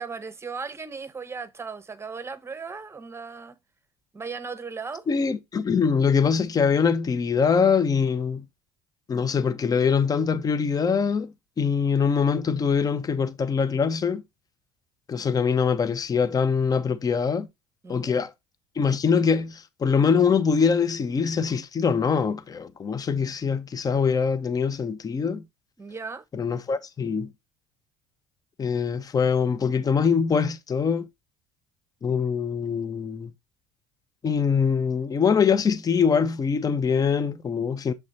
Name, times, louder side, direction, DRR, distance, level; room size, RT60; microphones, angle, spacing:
voice 1, 0.0-3.6 4.1-5.1 17.8-18.2 25.8-26.2, right 5 dB, 20° right, 1.0 m, -36 dB
voice 2, 5.1-8.4 9.1-14.2 15.1-17.5 17.9-18.3 18.8-25.4 26.3-27.3 28.6-31.1 32.0-33.3 34.2-37.9, left 6 dB, 30° left, 0.7 m, -23 dB
7.3 x 3.4 x 4.0 m
hypercardioid pair, 60°, 13 cm